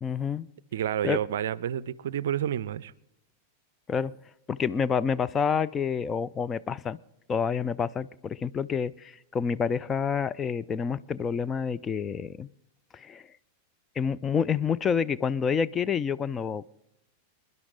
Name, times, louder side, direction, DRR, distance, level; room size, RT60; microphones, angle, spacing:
voice 1, 0.0-0.5 1.0-1.2 3.9-4.1 4.5-7.0 7.3-12.5 12.9-13.2 14.0-16.7, left 6 dB, 20° left, 14 dB, 0.4 m, -28 dB
voice 2, 0.7-2.9, right 10 dB, 60° right, 20 dB, 0.4 m, -29 dB
26.5 x 11.0 x 3.8 m, 0.88 s
figure-of-eight pair, 90°, 0 cm